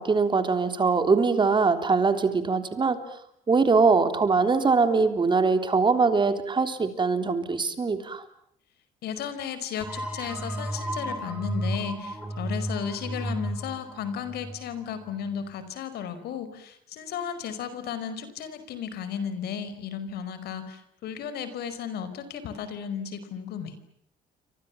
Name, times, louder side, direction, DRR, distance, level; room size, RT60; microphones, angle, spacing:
voice 1, 0.0-3.0 3.5-8.2, right 4 dB, 30° right, 9 dB, 3.5 m, -22 dB
voice 2, 9.0-23.7, left 8 dB, 70° left, 12 dB, 5.1 m, -34 dB
sound 1, 9.8-15.3, right 1 dB, 10° right, 6.3 m, -33 dB
29.5 x 26.0 x 7.3 m, 0.70 s
cardioid pair, 110°, 17 cm